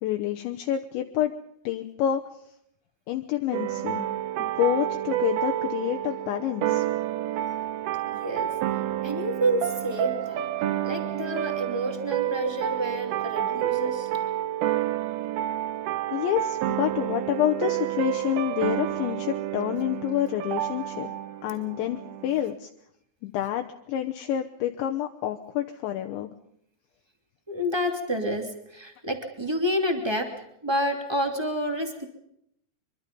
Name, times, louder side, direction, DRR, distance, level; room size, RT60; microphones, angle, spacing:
voice 1, 0.0-1.3 1.6-2.2 3.1-4.1 4.4-6.8 16.1-21.1 21.4-22.7 23.2-26.3, left 12 dB, 75° left, 4 dB, 3.1 m, -28 dB
sound 1, 3.5-22.5, right 13 dB, 75° right, 2.3 m, -29 dB
voice 2, 8.0-8.6 9.0-10.5 10.8-14.1 27.5-30.3 30.6-32.0, equal, 20° right, 4 dB, 0.7 m, -29 dB
24.5 x 24.0 x 5.3 m, 0.74 s
omnidirectional pair, 5.7 m